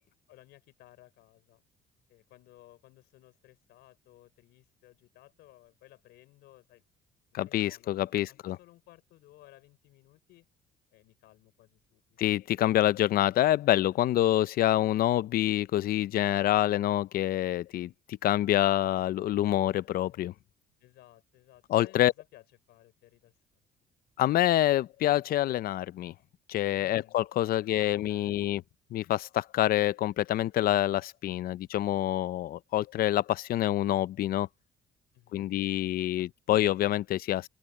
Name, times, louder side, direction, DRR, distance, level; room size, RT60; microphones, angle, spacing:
voice 1, 0.3-1.6 2.1-6.8 7.3-8.0 8.3-10.5 10.9-12.2 20.0-20.4 20.8-23.3 26.8-27.2 27.6-28.5 35.1-35.5, left 16 dB, 80° left, 5.4 m, -58 dB
voice 2, 7.3-8.6 12.2-20.3 21.7-22.1 24.2-26.1 26.5-28.6 28.9-34.5 35.3-37.5, left 13 dB, 60° left, 0.6 m, -26 dB
cardioid pair, 110°, 17 cm